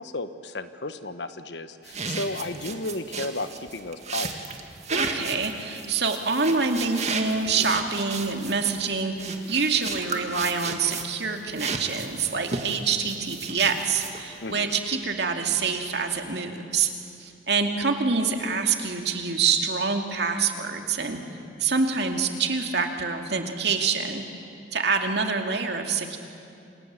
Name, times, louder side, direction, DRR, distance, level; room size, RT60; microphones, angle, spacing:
voice 1, 0.0-4.3 14.4-14.7, left 2 dB, 70° left, 10 dB, 1.3 m, -33 dB
sound 1, 1.9-11.2 11.6-14.4, right 4 dB, 40° right, 2.1 m, -33 dB
voice 2, 4.9-16.9 17.2-21.2 21.6-24.2 24.7-26.2, right 5 dB, 65° right, 4 dB, 2.5 m, -26 dB
28.5 x 27.5 x 7.6 m, 2.6 s
head